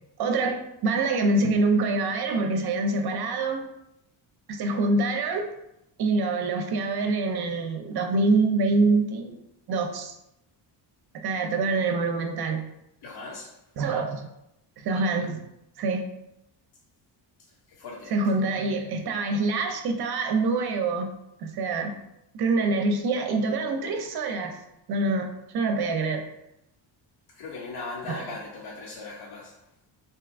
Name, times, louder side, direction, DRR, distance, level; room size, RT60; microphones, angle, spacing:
voice 1, 0.2-3.6 4.5-5.5 6.0-9.4 9.7-10.2 11.2-12.7 13.8-14.3 14.8-15.4 15.8-16.0 18.1-21.1 21.4-21.9 22.3-24.6 24.9-26.2 28.1-28.2, right 3 dB, 55° right, 5 dB, 0.6 m, -25 dB
voice 2, 13.0-13.5 17.7-18.1 27.3-29.6, left 3 dB, 55° left, -2 dB, 0.7 m, -38 dB
2.7 x 2.4 x 3.5 m, 0.84 s
cardioid pair, 90°, 46 cm